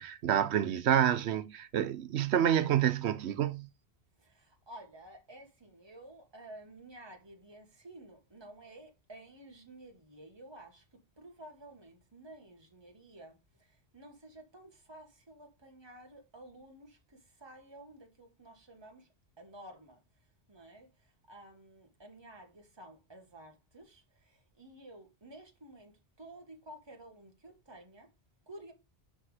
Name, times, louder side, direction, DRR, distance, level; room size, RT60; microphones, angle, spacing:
voice 1, 0.0-3.7, right 10 dB, 90° right, 1.0 m, -28 dB
voice 2, 4.2-19.1 19.4-20.0 20.5-28.1 28.5-28.7, right 1 dB, 25° right, 1.5 m, -53 dB
10.0 x 3.6 x 4.9 m
omnidirectional pair, 1.1 m